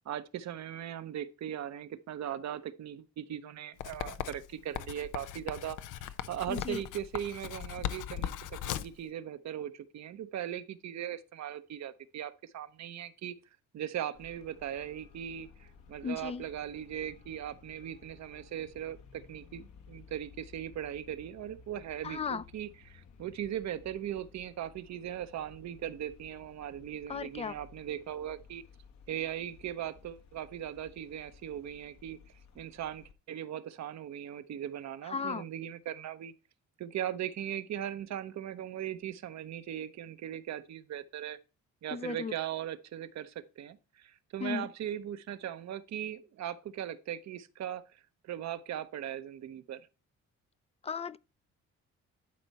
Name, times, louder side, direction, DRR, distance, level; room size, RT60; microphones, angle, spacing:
voice 1, 0.0-5.8 6.3-13.3 13.7-28.6 29.1-32.2 32.5-36.3 36.8-41.4 41.8-49.9, right 10 dB, 65° right, 0.8 m, -39 dB
Writing, 3.8-9.0, left 11 dB, 85° left, 0.6 m, -39 dB
voice 2, 6.5-6.8 16.0-16.4 22.0-22.4 27.1-27.5 35.1-35.4 41.9-42.3 44.4-44.7 50.8-51.2, left 5 dB, 20° left, 0.3 m, -35 dB
Traffic noise roadway noise, 14.1-33.1, left 5 dB, 65° left, 1.3 m, -57 dB
11.5 x 4.5 x 4.1 m
cardioid pair, 90°, 30 cm